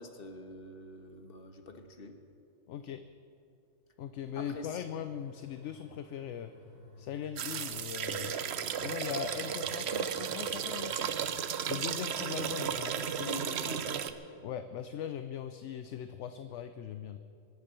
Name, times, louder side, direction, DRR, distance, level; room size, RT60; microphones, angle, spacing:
voice 1, 0.0-2.1 4.3-4.9 13.2-14.1, left 2 dB, 45° left, 5 dB, 1.5 m, -44 dB
voice 2, 2.7-3.0 4.0-6.5 7.0-8.4 8.8-11.1 11.7-13.3 14.4-17.2, left 9 dB, 70° left, 10 dB, 0.9 m, -40 dB
sound 1, 4.5-13.5, left 1 dB, 25° right, 2.5 m, -57 dB
sound 2, 7.4-14.1, right 8 dB, 60° right, 0.9 m, -34 dB
23.5 x 8.5 x 6.9 m, 2.5 s
omnidirectional pair, 1.3 m